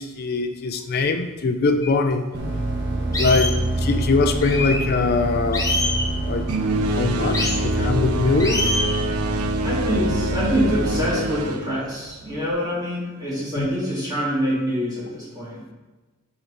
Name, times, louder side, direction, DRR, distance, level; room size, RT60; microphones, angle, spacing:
voice 1, 0.0-2.2 3.2-5.7 6.2-6.5 7.0-8.7 13.6-13.7, left 3 dB, 45° left, 7 dB, 0.4 m, -22 dB
sound 1, 1.8-1.9 2.5-2.6 3.1-3.6 4.4-4.8 5.5-6.1 7.3-7.6 8.4-9.0, left 2 dB, 15° left, 0.7 m, -25 dB
sound 2, 2.3-11.1, right 1 dB, 50° right, 0.8 m, -26 dB
voice 2, 3.0-3.6 9.4-15.6, equal, 15° right, -8 dB, 1.8 m, -26 dB
sound 3, 6.5-12.5, right 1 dB, 85° right, 0.5 m, -26 dB
4.6 x 4.3 x 5.0 m, 1.2 s
head